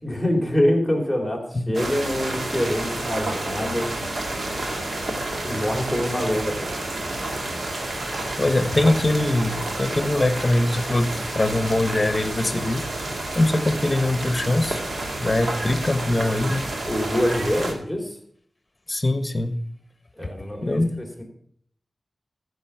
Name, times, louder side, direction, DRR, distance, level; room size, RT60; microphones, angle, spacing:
voice 1, 0.0-3.9 5.4-6.9 16.8-18.2 20.2-21.2, left 1 dB, 10° right, 1 dB, 3.5 m, -25 dB
sound 1, 1.7-17.7, right 2 dB, 75° right, 2.1 m, -30 dB
voice 2, 8.4-14.8 15.2-16.7 17.6-17.7 18.9-19.6 20.6-20.9, left 2 dB, 30° left, 10 dB, 1.2 m, -22 dB
14.0 x 6.6 x 5.7 m, 0.65 s
wide cardioid pair, 90°, 0 cm